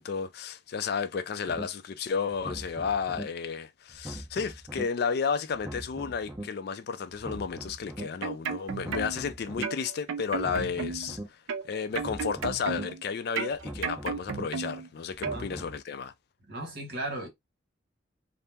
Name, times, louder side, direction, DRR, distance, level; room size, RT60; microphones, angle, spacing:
voice 1, 0.0-11.4 11.6-16.1, left 6 dB, 50° left, 0.3 m, -32 dB
sound 1, 1.5-1.6 2.3-3.2 3.9-4.8 5.5-6.4 7.1-8.0 8.7-9.6 10.3-11.2 11.9-12.8 13.5-14.4 15.1-15.8, right 1 dB, 15° right, 0.7 m, -41 dB
sound 2, 8.0-9.3 9.6-11.1 11.5-13.0 13.4-14.9 15.2-15.4, right 6 dB, 80° right, 0.4 m, -34 dB
voice 2, 16.5-17.3, right 1 dB, 50° right, 1.3 m, -36 dB
2.7 x 2.0 x 3.3 m
head